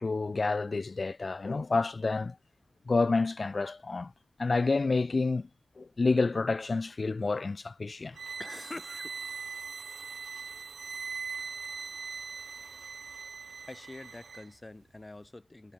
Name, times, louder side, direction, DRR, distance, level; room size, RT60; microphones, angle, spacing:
voice 1, 0.0-2.4 2.9-4.1 4.4-5.5 5.8-8.2, left 3 dB, 40° left, 0.5 m, -29 dB
sound 1, 8.1-14.5, right 5 dB, 70° right, 1.1 m, -41 dB
voice 2, 8.4-9.2 13.7-15.7, left 2 dB, 20° left, 1.3 m, -45 dB
wide cardioid pair, 145°, 0 cm